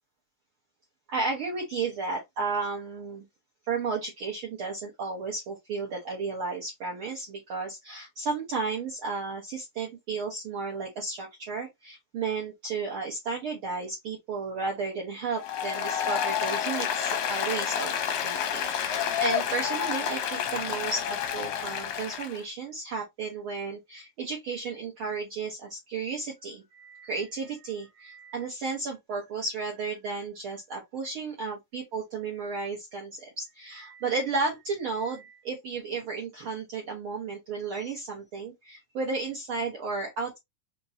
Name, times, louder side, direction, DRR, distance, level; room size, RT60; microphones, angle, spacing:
voice 1, 1.1-3.2 3.7-18.0 18.2-40.4, right 4 dB, 70° right, 1.2 m, -33 dB
Applause, 15.4-22.4, left 8 dB, 75° left, 1.5 m, -29 dB
5.2 x 2.9 x 2.7 m
omnidirectional pair, 3.9 m